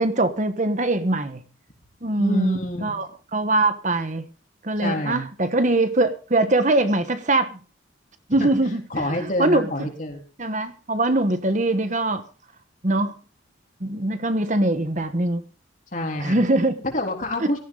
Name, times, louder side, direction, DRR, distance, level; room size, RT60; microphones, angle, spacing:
voice 1, 0.0-1.4 2.0-3.1 3.3-4.3 4.6-7.6 8.3-8.8 9.2-9.7 10.4-12.2 12.8-13.1 13.8-15.4 16.2-16.7 17.4-17.5, right 2 dB, 40° right, 1.3 m, -22 dB
voice 2, 2.2-2.9 4.8-5.2 8.4-8.5 8.9-10.2 15.9-16.4 16.9-17.6, left 1 dB, 40° left, 3.8 m, -27 dB
17.0 x 14.0 x 3.9 m
head